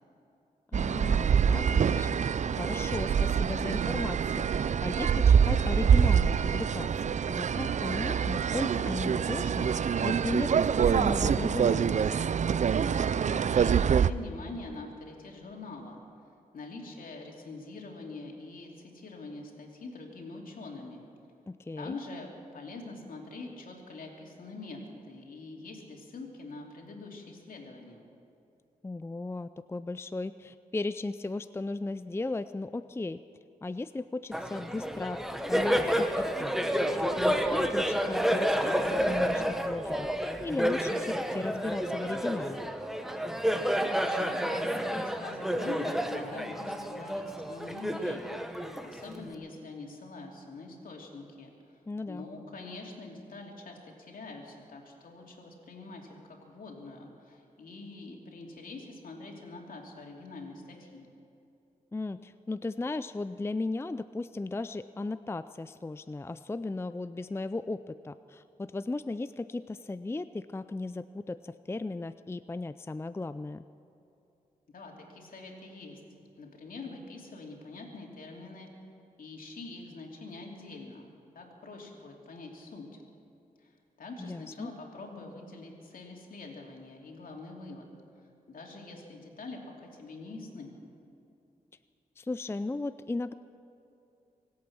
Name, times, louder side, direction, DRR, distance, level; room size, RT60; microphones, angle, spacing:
voice 1, 0.7-2.2 2.5-10.5 10.9-12.1 21.5-22.0 28.8-33.2 33.6-35.2 35.5-40.1 40.4-42.7 51.9-52.3 61.9-73.6 84.2-84.7 92.2-93.3, left 2 dB, 15° left, 13 dB, 0.4 m, -36 dB
sound 1, 0.7-14.1, right 7 dB, 55° right, 0.4 m, -25 dB
voice 2, 13.2-16.0 16.5-21.0 21.8-28.0 44.0-51.5 52.1-61.1 74.7-76.0 76.4-78.7 79.2-81.1 81.3-82.9 83.6-83.7 84.0-87.9 88.5-90.7, left 3 dB, 70° left, 0 dB, 2.9 m, -44 dB
Laughter, 34.3-49.3, equal, ahead, 1.2 m, -30 dB
24.5 x 8.7 x 6.1 m, 2.8 s
cardioid pair, 50°, 15 cm